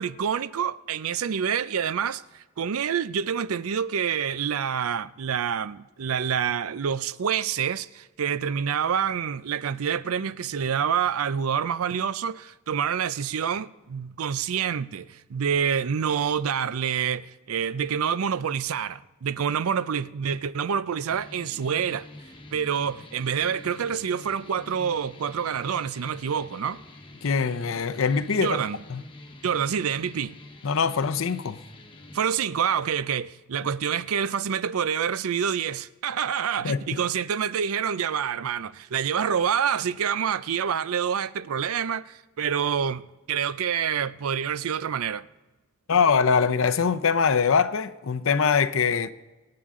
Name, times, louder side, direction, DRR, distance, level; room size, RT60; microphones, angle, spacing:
voice 1, 0.0-22.1 22.5-26.8 28.3-28.8 29.4-30.4 32.1-45.3, right 7 dB, 85° right, 0.5 m, -27 dB
sound 1, 21.1-32.2, left 1 dB, 25° left, 1.1 m, -46 dB
voice 2, 27.2-28.6 28.9-29.0 30.6-31.6 36.6-37.0 45.9-49.1, left 5 dB, 70° left, 0.6 m, -23 dB
25.0 x 8.7 x 3.7 m
head